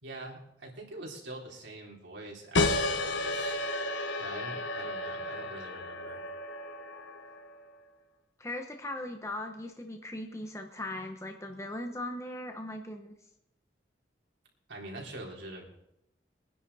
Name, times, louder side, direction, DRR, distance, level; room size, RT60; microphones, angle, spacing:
voice 1, 0.0-3.6 4.2-6.2 14.7-15.6, right 2 dB, 80° right, -2 dB, 3.7 m, -44 dB
sound 1, 2.5-7.7, left 2 dB, 85° left, 1.2 m, -32 dB
voice 2, 8.4-13.1, left 1 dB, 15° left, 4 dB, 1.0 m, -39 dB
23.0 x 10.0 x 4.2 m, 0.82 s
head